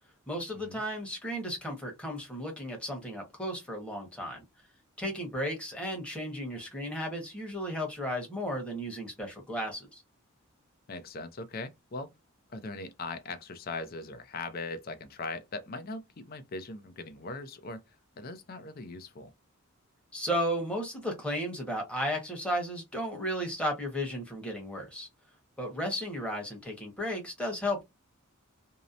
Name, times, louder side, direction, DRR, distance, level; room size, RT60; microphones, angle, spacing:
voice 1, 0.3-4.4 5.0-10.0 20.1-25.1 25.6-27.8, equal, 5° left, 1.0 m, -34 dB
voice 2, 10.9-12.1 12.5-19.3, left 3 dB, 45° left, 0.5 m, -40 dB
2.8 x 2.0 x 2.4 m
head